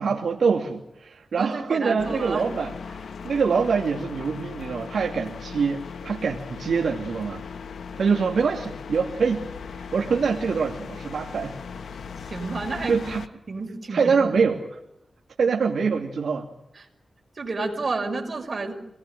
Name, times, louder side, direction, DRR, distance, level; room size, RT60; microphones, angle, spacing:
voice 1, 0.0-7.4 8.0-11.6 12.7-13.2 13.9-14.6 15.4-16.5, right 5 dB, 75° right, 1 dB, 2.6 m, -25 dB
voice 2, 1.4-2.4 12.3-13.0 13.5-14.4 17.4-18.7, right 3 dB, 45° right, 2 dB, 6.1 m, -30 dB
sound 1, 2.0-13.3, left 6 dB, 90° left, 1.1 m, -38 dB
27.0 x 20.0 x 9.3 m, 0.80 s
wide cardioid pair, 140°, 0 cm